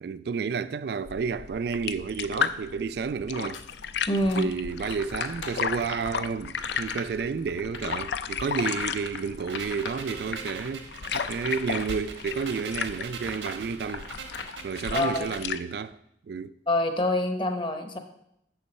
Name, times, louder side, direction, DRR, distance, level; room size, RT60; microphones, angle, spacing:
voice 1, 0.0-3.6 4.4-14.1 14.6-16.0 16.3-16.5, right 5 dB, 55° right, 0.3 m, -31 dB
sound 1, 1.0-15.6, left 7 dB, 65° left, 0.4 m, -35 dB
sound 2, 3.5-14.4, left 4 dB, 90° left, 0.8 m, -41 dB
voice 2, 4.1-4.5 14.9-15.3 16.7-18.0, left 1 dB, 25° left, 0.8 m, -26 dB
sound 3, 9.5-15.5, right 5 dB, 80° right, 1.2 m, -42 dB
7.0 x 6.8 x 5.4 m
head